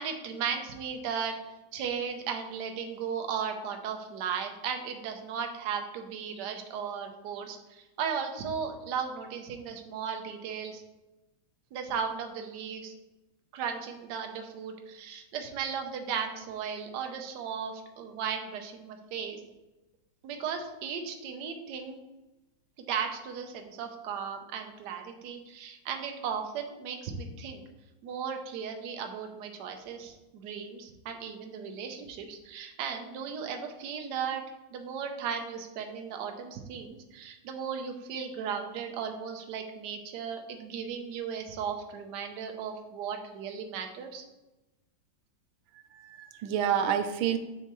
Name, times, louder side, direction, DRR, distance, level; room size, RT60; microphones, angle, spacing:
voice 1, 0.0-1.3 1.7-10.8 11.7-12.9 13.5-19.4 20.2-22.0 22.9-27.6 28.0-34.4 34.7-44.2, right 7 dB, 65° right, 5 dB, 1.2 m, -36 dB
voice 2, 45.8-47.4, right 9 dB, 80° right, 9 dB, 1.4 m, -29 dB
6.9 x 4.5 x 3.0 m, 1.0 s
omnidirectional pair, 2.3 m